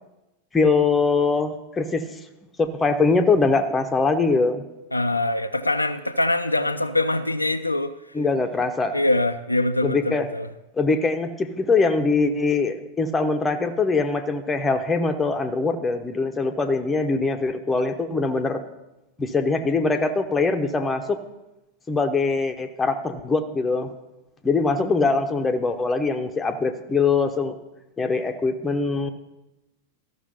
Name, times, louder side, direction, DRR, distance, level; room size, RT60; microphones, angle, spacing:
voice 1, 0.5-2.1 2.6-4.6 8.1-9.0 9.8-10.3 10.7-18.6 19.2-21.2 21.9-23.9 24.4-27.6 28.0-29.1, left 4 dB, 15° left, 6 dB, 0.9 m, -22 dB
voice 2, 4.9-7.9 8.9-10.5, left 2 dB, 85° left, 8 dB, 0.4 m, -23 dB
13.5 x 6.2 x 5.5 m, 0.97 s
figure-of-eight pair, 90°, 0 cm